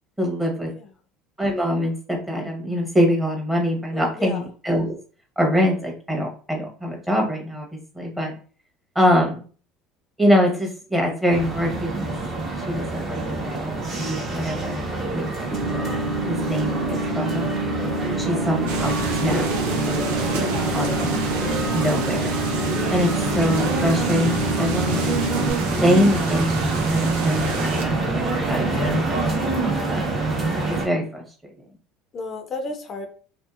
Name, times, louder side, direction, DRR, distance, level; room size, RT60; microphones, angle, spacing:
voice 1, 0.2-0.7 1.4-4.9 5.4-7.7 7.9-8.3 8.9-9.4 10.2-12.1 12.7-15.2 15.6-15.9 16.2-17.5 18.2-19.0 19.2-20.1 20.3-20.5 20.7-21.2 21.7-22.4 22.9-25.2 25.8-26.6 26.9-29.3 29.6-30.2 30.7-31.2, equal, 10° right, 0 dB, 1.0 m, -24 dB
voice 2, 3.9-4.4 14.8-15.5 20.5-21.7 28.7-28.9 32.1-33.1, left 3 dB, 40° left, 5 dB, 0.5 m, -34 dB
sound 1, 11.3-30.9, right 3 dB, 45° right, 1.3 m, -26 dB
sound 2, 15.5-25.5, right 1 dB, 65° right, 1.0 m, -28 dB
sound 3, 18.7-27.9, right 4 dB, 80° right, 0.5 m, -31 dB
2.6 x 2.4 x 2.4 m, 0.40 s
supercardioid pair, 90°, 0 cm